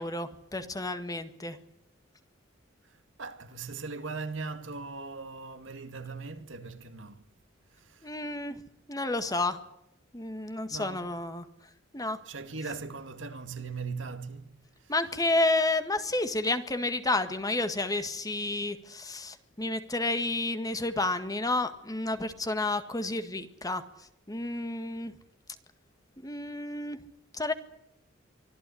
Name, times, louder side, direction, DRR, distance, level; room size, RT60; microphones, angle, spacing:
voice 1, 0.0-1.6 8.0-8.6 8.9-9.6 10.1-11.5 11.9-12.2 14.9-23.8 24.3-25.1 26.2-27.0 27.3-27.5, left 2 dB, 20° left, 1.8 m, -30 dB
voice 2, 2.9-7.3 7.7-8.2 10.7-11.1 12.3-14.5 14.8-14.9, right 4 dB, 70° right, 2.2 m, -39 dB
24.5 x 14.5 x 9.9 m
head